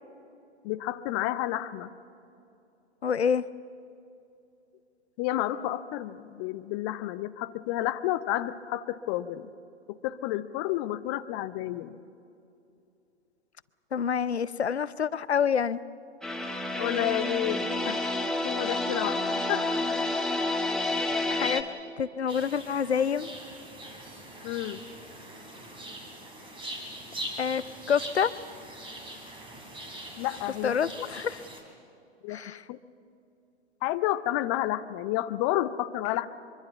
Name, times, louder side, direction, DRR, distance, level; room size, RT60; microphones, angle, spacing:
voice 1, 0.6-1.9 5.2-9.5 9.9-12.0 16.7-18.0 18.4-19.2 19.5-19.7 24.4-24.8 30.2-30.8 32.2-32.4 32.7-32.8 33.8-36.3, left 14 dB, 25° left, 12 dB, 0.6 m, -30 dB
voice 2, 3.0-3.4 13.9-15.8 21.3-21.6 22.0-23.3 27.4-27.6 27.9-28.3 30.6-31.4 32.3-32.6, left 7 dB, 70° left, 17 dB, 0.8 m, -27 dB
sound 1, 16.2-21.6, left 2 dB, ahead, 1.2 m, -29 dB
sound 2, 22.3-31.6, right 1 dB, 15° right, 3.6 m, -42 dB
24.0 x 23.5 x 7.1 m, 2.7 s
figure-of-eight pair, 115°, 33 cm